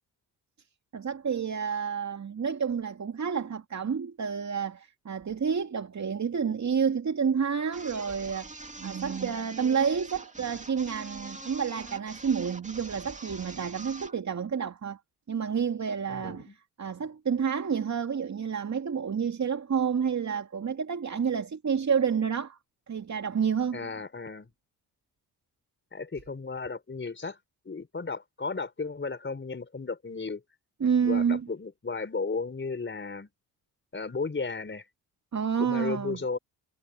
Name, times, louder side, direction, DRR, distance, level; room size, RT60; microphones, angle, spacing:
voice 1, 0.9-8.5 8.8-15.0 15.3-16.5 16.8-22.6 22.9-23.9 30.8-31.5 35.3-36.2, right 6 dB, 40° right, 2.5 m, -29 dB
sound 1, 7.7-14.2, right 2 dB, 15° right, 2.6 m, -44 dB
voice 2, 16.1-16.6 23.7-24.5 25.9-27.4 27.7-30.4 31.0-33.3 33.9-34.8 35.6-36.4, left 4 dB, 25° left, 5.1 m, -34 dB
supercardioid pair, 65°, 42 cm